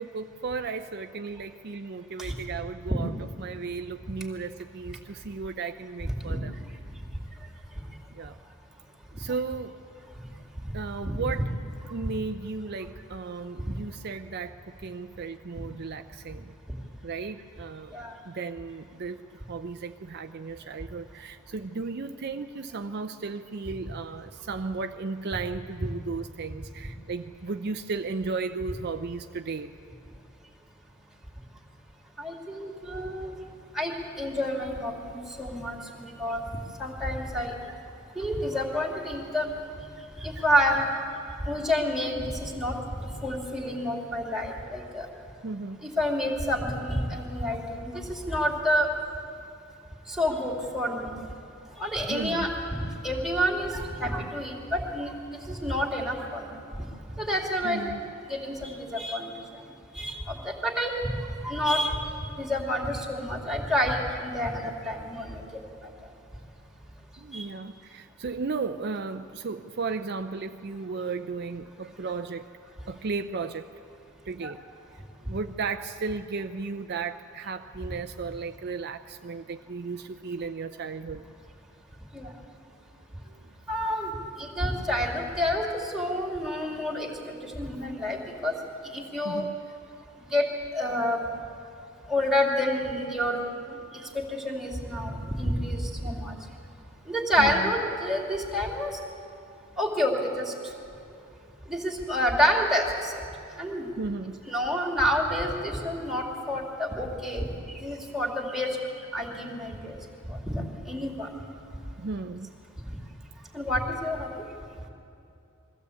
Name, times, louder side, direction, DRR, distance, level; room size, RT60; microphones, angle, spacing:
voice 1, 0.0-3.1 3.4-6.6 8.1-8.4 9.1-9.8 10.7-11.5 11.9-16.5 17.0-17.9 18.3-29.7 45.4-45.9 52.1-52.5 57.6-58.0 67.2-72.5 72.9-73.7 74.3-74.6 74.9-81.2 83.3-83.5 89.2-89.6 97.4-97.7 104.0-104.4 106.5-106.6 112.0-112.6, right 4 dB, 50° right, 8 dB, 0.5 m, -35 dB
voice 2, 32.2-33.3 33.7-36.4 36.8-37.5 38.1-39.5 40.2-40.9 41.4-45.1 45.8-48.9 50.2-51.1 51.8-52.5 53.0-56.9 57.1-57.8 58.3-59.3 59.9-60.9 61.4-62.1 62.4-65.4 67.3-67.4 74.4-74.5 82.1-82.3 83.7-84.1 84.4-88.5 88.9-89.4 90.3-90.4 90.7-91.2 92.1-93.4 93.7-93.8 94.1-96.3 97.1-99.0 99.8-100.5 101.7-103.1 103.6-103.9 104.5-107.5 107.8-108.8 109.1-110.0 110.3-111.3 113.5-114.4, equal, ahead, -2 dB, 2.6 m, -28 dB
22.0 x 15.5 x 8.5 m, 2.6 s
head